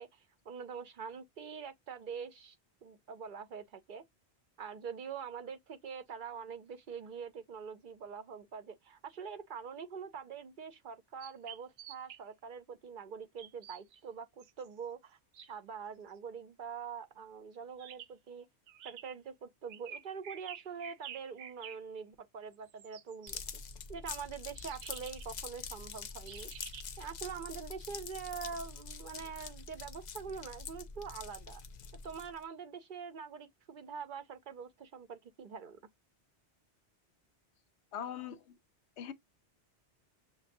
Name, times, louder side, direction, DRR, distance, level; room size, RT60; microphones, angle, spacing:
voice 1, 0.0-2.6 2.8-4.0 4.6-18.5 18.8-23.4 23.9-26.5 27.0-31.6 32.0-35.8, right 6 dB, 55° right, 0.7 m, -44 dB
sound 1, 11.2-12.2 13.4-13.8 14.4-14.7 17.8-18.1 18.7-19.1 19.7-21.8 22.5-23.5 24.6-25.3 26.3-27.2, right 9 dB, 85° right, 0.9 m, -49 dB
sound 2, 23.3-32.4, left 5 dB, 55° left, 0.5 m, -45 dB
voice 2, 37.9-38.4 39.0-39.1, left 9 dB, 90° left, 0.9 m, -40 dB
6.6 x 2.3 x 2.6 m
omnidirectional pair, 1.1 m